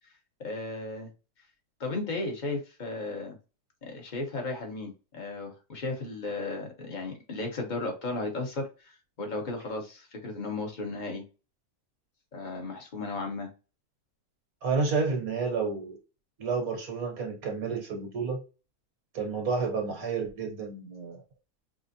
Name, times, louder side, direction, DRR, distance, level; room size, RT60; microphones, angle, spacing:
voice 1, 0.4-1.1 1.8-3.4 3.8-11.2 12.3-13.5, left 3 dB, 35° left, 1.0 m, -35 dB
voice 2, 14.6-16.0 16.4-18.4 19.1-21.2, right 4 dB, 65° right, 1.5 m, -30 dB
5.1 x 2.0 x 2.7 m
omnidirectional pair, 1.7 m